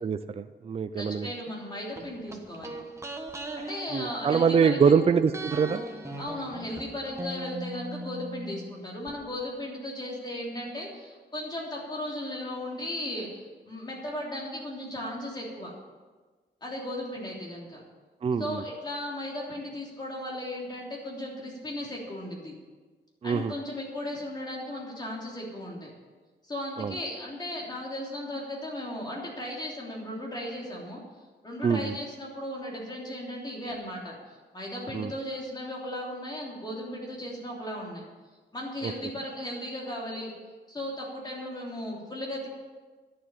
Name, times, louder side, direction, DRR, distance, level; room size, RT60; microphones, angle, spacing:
voice 1, 0.0-1.3 3.9-5.8 18.2-18.6 23.2-23.5 26.8-26.9 31.6-31.9 34.9-35.1 38.8-38.9, right 6 dB, 30° right, 10 dB, 0.4 m, -24 dB
voice 2, 0.9-2.8 3.5-5.0 6.2-15.7 16.6-17.8 18.4-22.5 23.2-25.9 26.4-31.0 31.4-38.0 38.5-40.3 40.7-42.5, left 1 dB, 25° left, -2 dB, 3.1 m, -36 dB
sound 1, 2.0-4.9 5.3-9.1 9.4-9.5, right 1 dB, 15° right, 1.2 m, -40 dB
11.0 x 7.7 x 10.0 m, 1.4 s
wide cardioid pair, 165°, 19 cm